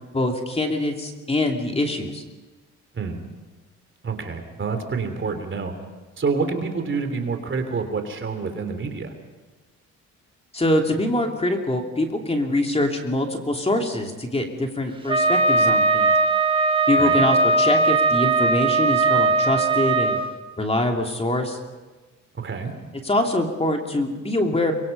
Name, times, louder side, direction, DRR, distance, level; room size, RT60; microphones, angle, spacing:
voice 1, 0.1-2.2 10.5-16.1 16.9-20.2 20.6-21.6 23.0-24.7, left 1 dB, 20° left, 3 dB, 2.8 m, -24 dB
voice 2, 4.0-5.7 6.2-9.1 17.0-17.2 22.3-22.7, right 4 dB, 40° right, 7 dB, 3.2 m, -27 dB
Wind instrument woodwind instrument, 15.1-20.2, right 3 dB, 15° right, 1.6 m, -19 dB
24.0 x 23.0 x 5.4 m, 1.3 s
cardioid pair, 90°, 30 cm